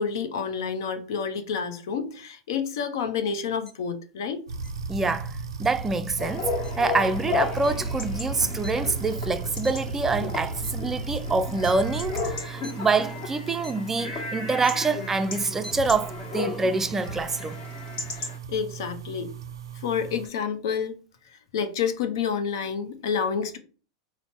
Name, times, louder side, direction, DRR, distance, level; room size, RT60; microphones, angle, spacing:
voice 1, 0.0-4.4 18.5-19.3 19.7-20.9 21.2-23.6, left 6 dB, 70° left, 0.6 m, -29 dB
sound 1, 3.7-3.8 4.6-4.7 5.6-5.7 6.6-6.7 7.6-7.7 8.2-9.3 9.6-9.9 10.5-10.9 11.6-11.7 12.4-12.7 13.6-13.7 14.5-14.9 15.5-15.7, equal, 20° left, 1.0 m, -44 dB
sound 2, 4.5-20.3, right 4 dB, 80° right, 0.4 m, -35 dB
voice 2, 4.9-6.5 6.8-17.6, right 3 dB, 15° right, 0.4 m, -26 dB
Chatter / Bark / Livestock farm animals working animals, 6.2-18.4, left 5 dB, 45° left, 1.3 m, -35 dB
4.2 x 2.0 x 4.2 m
hypercardioid pair, 95°, 2 cm